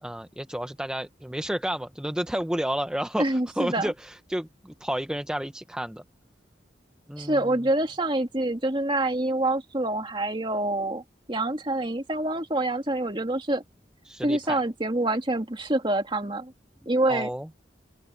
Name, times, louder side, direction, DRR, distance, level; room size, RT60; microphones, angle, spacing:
voice 1, 0.0-6.0 7.1-7.6 14.0-14.6 17.1-17.5, equal, 5° right, 0.5 m, -31 dB
voice 2, 3.2-3.9 7.2-11.0 11.3-13.6 14.2-16.5 16.9-17.3, right 1 dB, 30° right, 2.1 m, -26 dB
open air
head